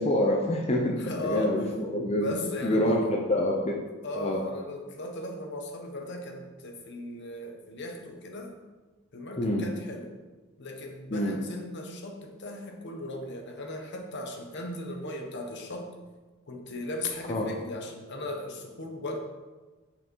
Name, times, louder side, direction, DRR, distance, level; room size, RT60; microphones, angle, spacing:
voice 1, 0.0-3.8 4.2-4.4 9.4-9.6 11.1-11.4 17.3-17.5, left 1 dB, 30° left, 0 dB, 0.8 m, -27 dB
voice 2, 1.0-1.6 2.1-3.1 4.0-8.5 9.1-10.2 10.6-15.9 16.5-19.2, left 1 dB, 55° left, 3 dB, 1.2 m, -37 dB
7.7 x 5.8 x 4.6 m, 1.3 s
head